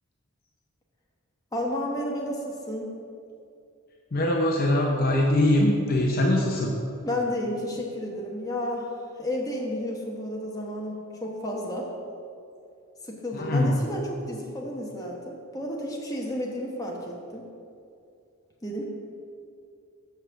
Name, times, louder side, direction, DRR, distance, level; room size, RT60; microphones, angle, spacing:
voice 1, 1.5-2.9 7.0-8.9 9.2-11.9 13.0-17.5 18.6-18.8, left 1 dB, 15° left, -2 dB, 1.0 m, -32 dB
voice 2, 4.1-6.7 13.3-13.7, left 1 dB, 40° left, 0 dB, 0.6 m, -22 dB
6.3 x 5.7 x 6.9 m, 2.5 s
head